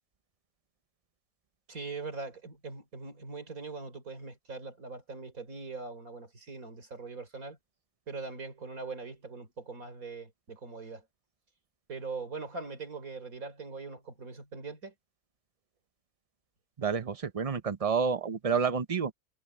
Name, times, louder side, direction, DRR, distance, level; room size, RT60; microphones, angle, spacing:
voice 1, 1.7-7.6 8.1-11.0 11.9-14.9, right 4 dB, 80° right, 4.2 m, -41 dB
voice 2, 16.8-19.1, right 6 dB, 30° right, 0.7 m, -29 dB
omnidirectional pair, 1.5 m